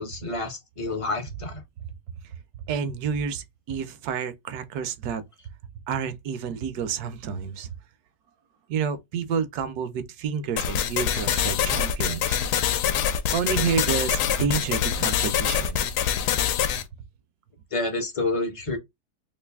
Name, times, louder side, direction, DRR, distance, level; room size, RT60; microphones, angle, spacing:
voice 1, 0.0-1.6 17.7-18.8, left 2 dB, 35° left, 0.5 m, -29 dB
voice 2, 2.3-5.2 5.9-7.8 8.7-12.4 13.3-15.8, right 7 dB, 75° right, 1.1 m, -29 dB
sound 1, 10.6-16.8, left 9 dB, 80° left, 1.1 m, -25 dB
3.2 x 2.6 x 3.3 m
omnidirectional pair, 1.7 m